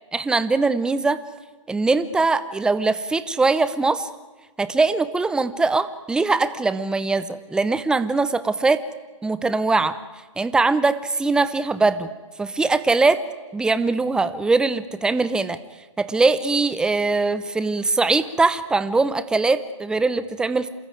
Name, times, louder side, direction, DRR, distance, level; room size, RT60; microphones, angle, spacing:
voice 1, 0.1-1.2 1.7-4.1 4.6-8.8 9.2-10.0 10.4-12.1 12.4-13.2 13.5-15.6 16.0-20.7, right 3 dB, 5° right, 14 dB, 0.7 m, -21 dB
27.0 x 14.0 x 9.3 m, 1.3 s
hypercardioid pair, 145°, 17 cm